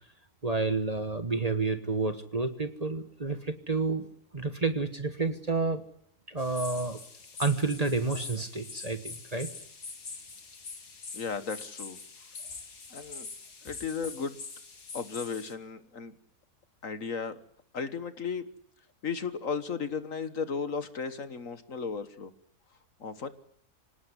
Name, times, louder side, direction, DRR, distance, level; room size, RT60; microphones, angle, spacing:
voice 1, 0.4-4.1 4.3-5.8 6.3-7.0 7.4-9.5, right 3 dB, 25° right, 9 dB, 1.4 m, -30 dB
sound 1, 6.4-15.5, left 4 dB, 85° left, 2.9 m, -44 dB
voice 2, 11.1-12.0 12.9-13.3 13.7-14.4 14.9-16.1 16.8-17.4 17.7-18.5 19.0-22.3 23.0-23.3, left 5 dB, 55° left, 12 dB, 1.8 m, -35 dB
26.0 x 18.0 x 9.8 m, 0.66 s
omnidirectional pair, 1.6 m